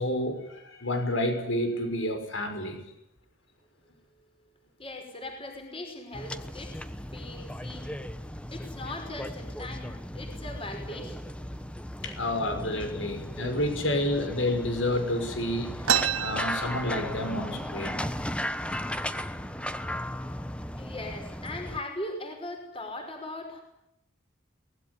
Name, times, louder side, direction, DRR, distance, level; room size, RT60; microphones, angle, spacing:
voice 1, 0.0-2.8 12.0-18.0, left 1 dB, 70° left, 7 dB, 5.8 m, -30 dB
voice 2, 4.8-6.8 7.1-8.0 8.5-11.6 20.8-23.6, left 2 dB, 25° left, 4 dB, 5.6 m, -40 dB
sound 1, 6.1-21.8, equal, 5° left, 1.1 m, -36 dB
sound 2, 15.8-17.5 17.8-17.9 18.2-18.8 19.4-19.5 20.2-20.4 20.9-21.3, right 9 dB, 85° right, 1.6 m, -29 dB
24.5 x 20.0 x 10.0 m, 0.82 s
head